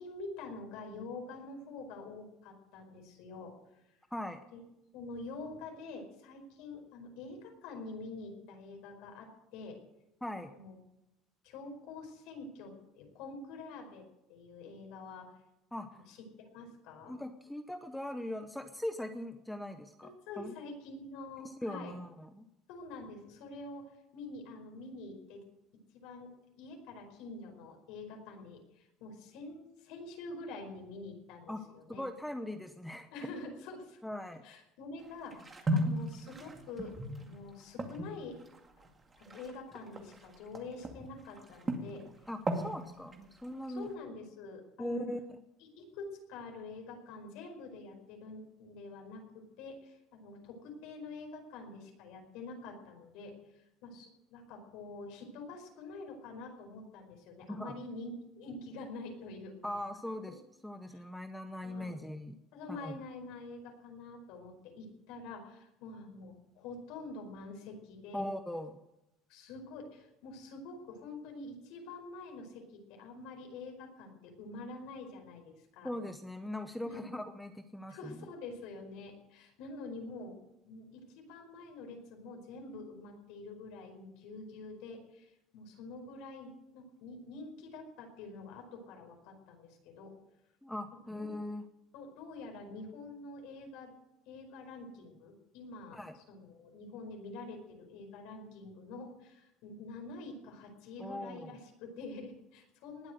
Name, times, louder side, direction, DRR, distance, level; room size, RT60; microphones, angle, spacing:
voice 1, 0.0-3.5 4.5-4.6 4.9-9.8 10.4-10.8 11.4-14.0 14.3-15.3 16.1-17.2 20.0-21.9 22.7-25.4 25.9-26.3 26.6-32.0 33.1-34.0 34.4-38.4 38.8-38.9 39.2-42.0 42.6-42.8 43.7-45.1 45.8-59.8 60.3-60.4 60.9-61.0 61.6-62.0 62.5-68.2 69.3-75.9 76.8-77.1 77.9-80.4 80.6-90.1 91.2-91.4 91.9-93.9 94.3-103.1, left 3 dB, 75° left, 3 dB, 5.0 m, -46 dB
voice 2, 4.1-4.4 10.2-10.5 15.7-16.0 17.1-20.1 20.4-20.5 21.4-22.5 31.5-31.6 31.9-33.1 34.0-34.4 42.3-43.1 43.4-43.9 44.8-45.2 57.5-57.8 59.6-60.3 60.6-62.4 62.7-62.9 68.1-68.8 75.8-78.2 90.6-91.6 95.9-96.2 101.0-101.5, left 1 dB, 5° left, 7 dB, 0.8 m, -40 dB
sound 1, 35.0-41.1 41.4-42.7 43.1-43.9, right 1 dB, 20° right, 2.2 m, -37 dB
20.0 x 8.2 x 7.9 m, 0.88 s
cardioid pair, 150°, 0 cm